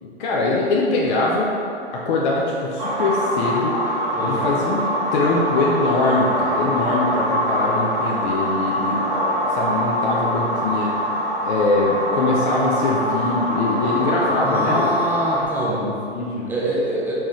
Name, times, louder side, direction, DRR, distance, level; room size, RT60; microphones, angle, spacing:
voice 1, 0.0-1.5 1.9-3.7 4.2-4.8 5.1-9.0 9.5-10.9 11.4-15.0 15.8-16.5, left 2 dB, 45° left, -3 dB, 0.6 m, -22 dB
sound 1, 2.8-15.4, equal, 45° right, 1.4 m, -24 dB
voice 2, 4.1-4.5 14.4-15.9 16.5-17.1, right 1 dB, 5° right, -6 dB, 0.6 m, -25 dB
4.4 x 3.5 x 3.1 m, 2.6 s
figure-of-eight pair, 110°, 33 cm